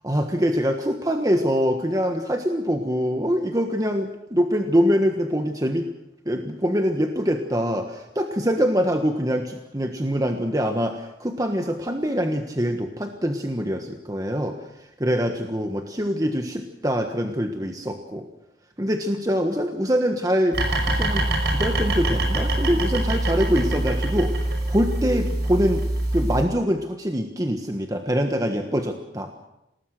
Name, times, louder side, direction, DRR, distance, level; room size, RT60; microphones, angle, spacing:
voice 1, 0.0-5.9 6.2-18.3 18.8-20.6 20.9-25.8 26.1-29.3, equal, 20° right, 4 dB, 1.4 m, -24 dB
sound 1, 20.5-26.4, right 1 dB, 65° right, 5.8 m, -24 dB
27.0 x 19.5 x 6.6 m, 0.88 s
head